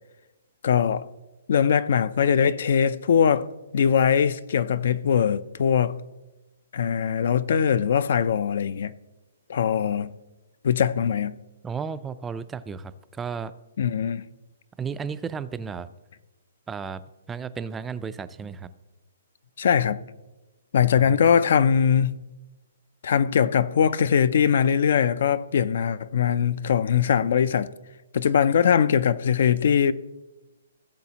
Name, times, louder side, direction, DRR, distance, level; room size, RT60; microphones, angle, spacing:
voice 1, 0.6-1.1 1.5-3.5 3.7-6.0 6.7-9.0 9.5-10.1 10.6-11.4 13.8-14.2 19.6-20.0 20.7-22.1 23.0-27.7 28.1-29.9, left 7 dB, 60° left, 0.4 m, -21 dB
voice 2, 11.6-13.5 14.8-15.9 16.7-17.0 17.3-18.7 20.9-21.2, right 6 dB, 10° right, 0.3 m, -33 dB
16.0 x 7.1 x 2.9 m
hypercardioid pair, 155°, 0 cm